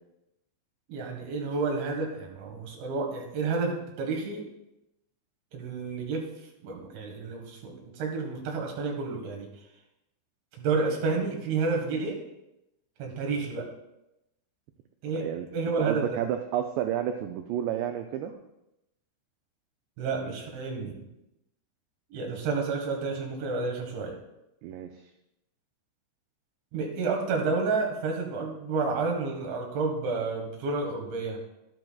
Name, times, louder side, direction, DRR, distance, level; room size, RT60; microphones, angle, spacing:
voice 1, 0.9-4.4 5.5-6.3 6.6-9.5 10.6-12.2 13.0-13.7 15.0-15.3 15.5-16.2 20.0-21.0 22.1-24.2 26.7-31.4, right 4 dB, 70° right, 1 dB, 3.9 m, -30 dB
voice 2, 15.8-18.3 24.6-25.0, right 10 dB, 90° right, 5 dB, 2.4 m, -30 dB
12.5 x 12.0 x 2.3 m, 0.88 s
omnidirectional pair, 5.6 m